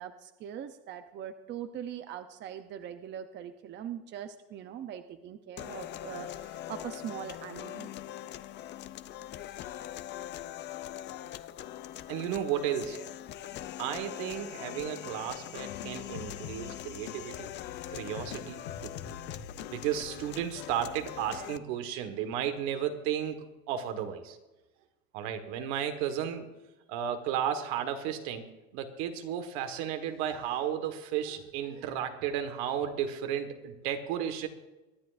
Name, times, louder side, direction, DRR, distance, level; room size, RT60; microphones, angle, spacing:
voice 1, 0.0-7.9, right 9 dB, 35° right, 8 dB, 0.7 m, -41 dB
sound 1, 5.6-21.6, left 12 dB, 35° left, 0.5 m, -42 dB
voice 2, 12.1-13.0 13.8-17.5 17.9-18.9 19.7-24.4 25.1-26.5 26.9-28.4 28.7-34.5, right 9 dB, 75° right, 7 dB, 1.6 m, -33 dB
sound 2, 15.7-21.3, left 7 dB, 80° left, 1.2 m, -46 dB
23.5 x 10.5 x 2.6 m, 1.1 s
cardioid pair, 145°, 32 cm